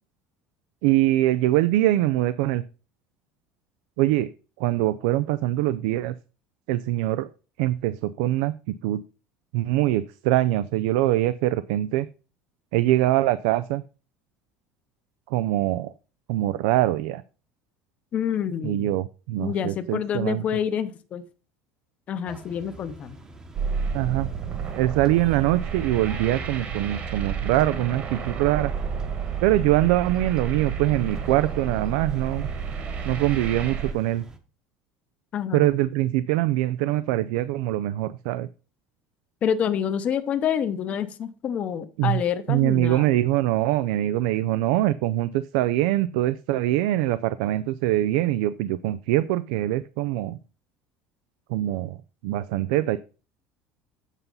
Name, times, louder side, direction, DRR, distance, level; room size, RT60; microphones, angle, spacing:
voice 1, 0.8-2.6 4.0-4.3 4.6-6.1 6.7-7.3 7.6-8.5 8.8-9.0 9.5-12.1 12.7-13.8 15.3-15.9 16.3-17.2 18.6-20.4 23.9-24.3 24.8-28.7 29.4-32.5 33.1-34.2 35.5-38.5 42.0-42.2 42.5-50.4 51.5-52.0 52.2-53.0, right 15 dB, 85° right, 14 dB, 0.4 m, -23 dB
voice 2, 18.1-18.9 19.4-21.2 22.1-23.2 35.3-35.7 39.4-43.1, left 8 dB, 30° left, 10 dB, 0.7 m, -27 dB
sound 1, 22.3-34.4, right 2 dB, 15° right, 0.9 m, -47 dB
sound 2, 23.5-33.9, right 6 dB, 35° right, 1.4 m, -31 dB
8.2 x 5.5 x 5.3 m, 0.34 s
cardioid pair, 170°, 5 cm